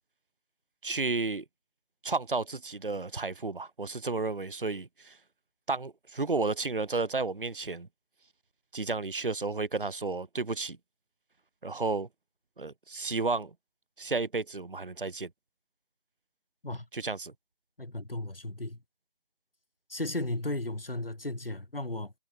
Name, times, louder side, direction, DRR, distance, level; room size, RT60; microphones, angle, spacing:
voice 1, 0.8-1.4 2.0-5.2 5.7-7.9 8.7-10.8 11.6-12.1 12.6-13.5 14.0-15.3 16.9-17.3, right 3 dB, 65° right, 0.9 m, -32 dB
voice 2, 17.8-18.8 19.9-22.1, left 2 dB, 75° left, 2.4 m, -35 dB
figure-of-eight pair, 165°, 29 cm